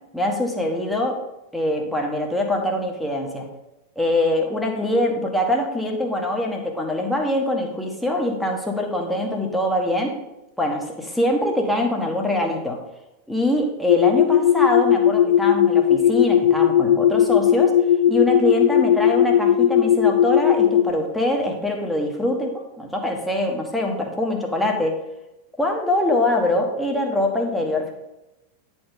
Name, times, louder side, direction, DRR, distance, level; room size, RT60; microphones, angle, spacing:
voice 1, 0.1-1.2 1.5-3.5 3.9-10.2 10.6-12.8 13.3-17.8 18.1-25.0 25.6-27.9, left 1 dB, 5° left, 1 dB, 1.5 m, -23 dB
sound 1, 13.9-20.9, left 10 dB, 60° left, 0.4 m, -17 dB
10.0 x 4.5 x 5.2 m, 0.94 s
figure-of-eight pair, 90°, 0 cm